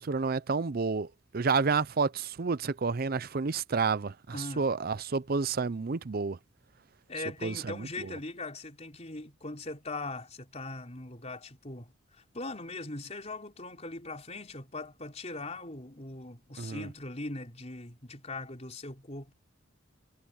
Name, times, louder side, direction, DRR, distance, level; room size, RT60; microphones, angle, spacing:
voice 1, 0.0-6.4 7.4-8.1 16.6-16.9, right 4 dB, 50° right, 0.5 m, -30 dB
voice 2, 4.3-4.7 7.1-11.9 12.3-19.3, left 2 dB, 35° left, 4.4 m, -40 dB
head